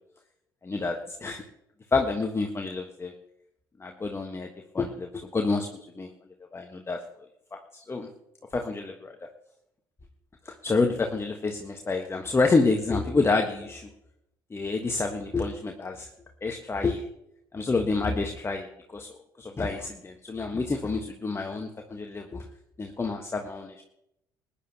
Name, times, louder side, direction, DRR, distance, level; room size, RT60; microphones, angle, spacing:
voice 1, 0.6-1.4 1.9-3.1 3.8-4.5 4.7-5.7 6.0-6.1 6.5-7.0 7.5-8.1 8.5-9.1 10.4-13.9 14.5-16.1 16.4-17.0 17.5-22.5 22.8-23.8, left 3 dB, 20° left, 4 dB, 1.4 m, -28 dB
21.5 x 10.5 x 2.9 m, 0.79 s
figure-of-eight pair, 50°, 11 cm